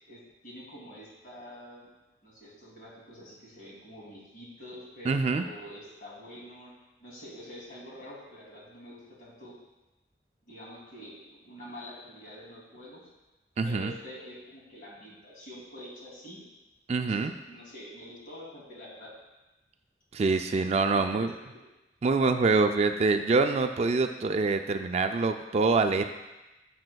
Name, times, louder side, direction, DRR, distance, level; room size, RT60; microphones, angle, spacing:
voice 1, 0.1-1.9 2.2-6.7 7.0-9.6 10.5-13.1 13.6-16.4 17.0-19.1 20.9-21.5, equal, 50° left, -4 dB, 2.7 m, -46 dB
voice 2, 5.1-5.4 13.6-13.9 16.9-17.3 20.1-21.3 22.0-26.0, right 3 dB, 40° right, 7 dB, 0.3 m, -25 dB
10.5 x 7.6 x 2.3 m, 1.0 s
head